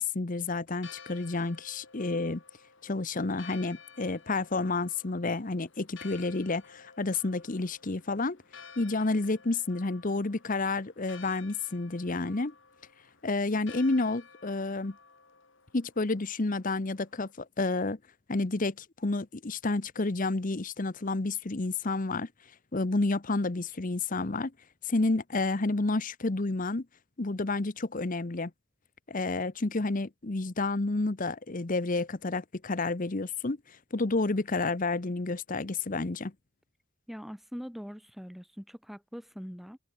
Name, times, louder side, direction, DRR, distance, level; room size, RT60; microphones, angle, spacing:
voice 1, 0.0-2.4 2.8-8.4 8.8-12.5 13.2-15.0 15.7-18.0 18.3-22.3 22.7-24.5 24.8-26.9 27.2-28.5 29.1-36.3, left 3 dB, 40° left, 0.9 m, -30 dB
Church bell, 0.7-17.3, left 6 dB, 60° left, 3.4 m, -54 dB
voice 2, 37.1-39.8, equal, ahead, 1.6 m, -42 dB
head